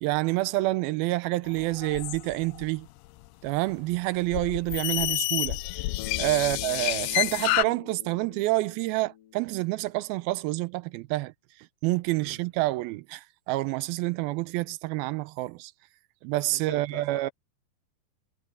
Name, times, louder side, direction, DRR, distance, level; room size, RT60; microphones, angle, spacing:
voice 1, 0.0-2.9 3.4-5.6 6.2-11.3 11.8-15.7 16.2-17.3, right 19 dB, 80° right, 2.2 m, -28 dB
sound 1, 1.5-2.7 4.3-7.6, left 19 dB, 80° left, 2.4 m, -29 dB
Bass guitar, 6.0-10.0, left 10 dB, 60° left, 2.8 m, -45 dB
voice 2, 12.2-12.5 16.5-17.3, right 1 dB, 35° right, 2.8 m, -44 dB
omnidirectional pair, 4.8 m